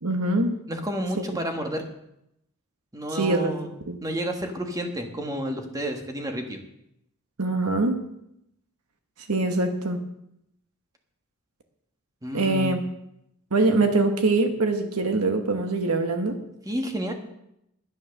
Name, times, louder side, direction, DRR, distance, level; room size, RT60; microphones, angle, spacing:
voice 1, 0.0-0.6 3.1-3.5 3.9-4.0 7.4-8.0 9.3-10.0 12.3-12.8 13.5-16.4, right 2 dB, 85° right, 6 dB, 1.3 m, -23 dB
voice 2, 0.7-1.9 2.9-3.7 4.0-6.6 12.2-12.8 16.6-17.1, equal, 15° right, 4 dB, 1.5 m, -30 dB
10.5 x 9.6 x 6.5 m, 0.81 s
head